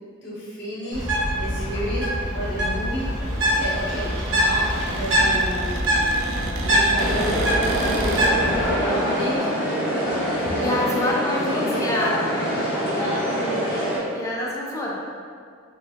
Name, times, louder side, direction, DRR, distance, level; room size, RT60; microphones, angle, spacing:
voice 1, 0.2-1.1 1.4-6.1 6.6-7.3 7.8-8.1 8.4-9.5 10.5-10.8 11.3-11.9 12.8-13.3, equal, 60° left, -6 dB, 0.8 m, -31 dB
Bird, 0.9-8.7, equal, 65° right, 0.8 m, -23 dB
Cupboard open or close, 1.6-8.3, right 3 dB, 85° right, 0.3 m, -35 dB
sound 1, 7.0-14.0, equal, 10° right, 1.3 m, -25 dB
voice 2, 10.4-12.2 13.7-14.9, left 1 dB, 15° left, -4 dB, 0.4 m, -27 dB
3.0 x 2.3 x 2.7 m, 2.1 s
head